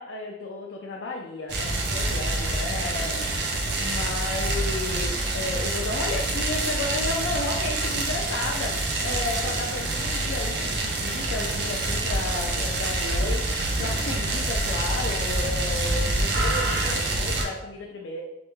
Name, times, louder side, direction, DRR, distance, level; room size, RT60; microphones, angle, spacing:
voice 1, 0.0-18.2, left 2 dB, 80° left, -1 dB, 0.4 m, -33 dB
sound 1, 1.5-17.4, right 2 dB, 65° right, 0.5 m, -26 dB
3.3 x 2.1 x 3.0 m, 0.90 s
head